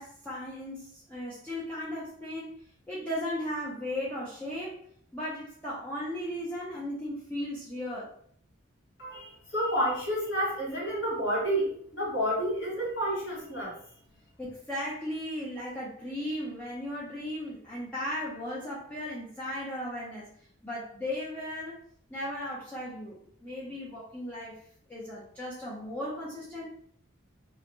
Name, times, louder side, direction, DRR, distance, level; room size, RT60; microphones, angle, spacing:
voice 1, 0.0-4.8 5.1-8.1 14.4-20.3 20.6-21.8 22.1-23.2 23.4-24.6 24.9-26.6, left 1 dB, 10° left, -8 dB, 0.4 m, -36 dB
voice 2, 9.0-13.7, equal, 60° left, -4 dB, 1.3 m, -30 dB
2.4 x 2.1 x 3.0 m, 0.62 s
head